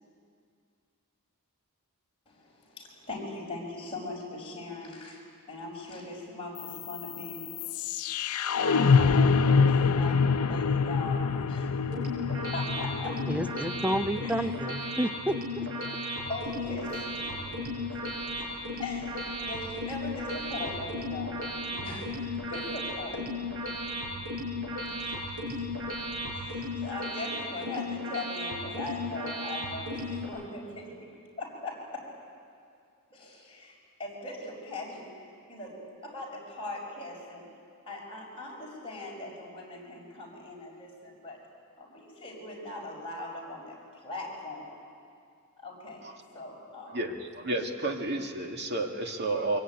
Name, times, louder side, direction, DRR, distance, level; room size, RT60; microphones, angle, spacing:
voice 1, 2.3-5.2 5.5-7.5 8.5-11.7 12.5-13.2 14.2-14.5 16.3-17.1 17.6-17.7 18.8-22.2 22.5-23.2 25.0-25.1 26.3-30.8 31.4-32.0 33.1-33.7 34.0-35.1 35.5-37.5 37.9-41.4 41.8-43.8 44.0-44.8 45.6-46.0 46.3-46.9, left 2 dB, 25° left, -4 dB, 5.8 m, -40 dB
sound 1, 6.6-16.6, left 5 dB, 80° left, 0.6 m, -27 dB
sound 2, 11.8-30.3, left 1 dB, 70° right, 7.1 m, -35 dB
voice 2, 13.3-16.0, equal, 5° right, 10 dB, 0.6 m, -31 dB
sound 3, 16.2-26.7, equal, 25° right, 6.8 m, -51 dB
voice 3, 46.9-49.6, right 2 dB, 50° right, 3 dB, 2.2 m, -31 dB
23.5 x 22.0 x 9.3 m, 2.3 s
head